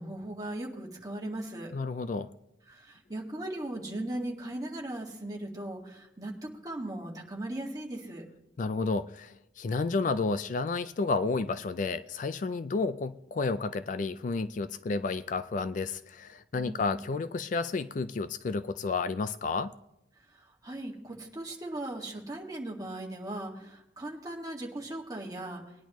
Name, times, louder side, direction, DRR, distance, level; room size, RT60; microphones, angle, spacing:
voice 1, 0.0-1.7 2.7-8.3 16.5-17.0 20.3-25.6, right 1 dB, 20° right, 1.9 m, -38 dB
voice 2, 1.7-2.3 8.6-19.7, left 4 dB, 45° left, 0.4 m, -31 dB
20.0 x 10.0 x 3.1 m
head